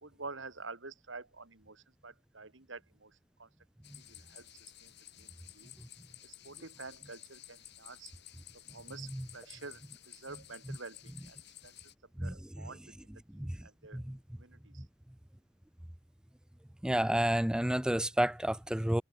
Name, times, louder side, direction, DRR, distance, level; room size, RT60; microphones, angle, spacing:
voice 1, 0.0-3.5 4.0-4.9 5.2-5.7 6.2-8.1 8.5-11.4 11.6-11.7 12.2-14.0 14.4-14.8, right 3 dB, 65° right, 2.7 m, -49 dB
sound 1, 3.8-11.9, left 13 dB, 60° left, 3.0 m, -54 dB
voice 2, 16.8-19.0, right 1 dB, 5° right, 0.4 m, -30 dB
head